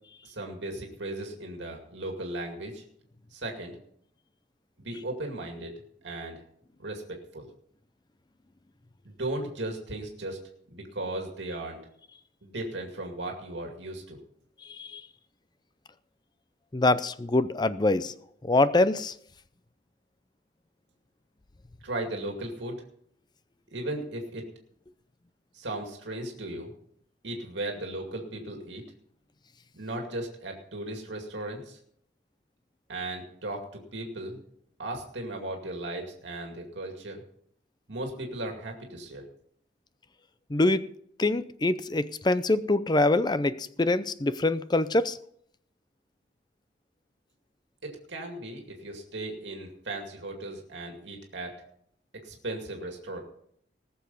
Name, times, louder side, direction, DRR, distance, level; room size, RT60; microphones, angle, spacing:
voice 1, 0.2-2.8 3.3-3.8 4.8-6.4 6.8-7.5 9.0-10.4 10.7-11.8 12.4-14.2 21.8-22.8 23.7-24.5 25.5-26.7 27.2-28.8 29.7-31.8 32.9-34.4 34.8-37.2 37.9-39.2 47.8-51.6 52.2-53.2, right 1 dB, 70° right, 2.3 m, -36 dB
voice 2, 14.7-15.0 16.7-18.1 18.4-19.1 40.5-40.8 41.2-45.2, left 2 dB, 25° left, 0.5 m, -24 dB
19.5 x 7.0 x 5.4 m
head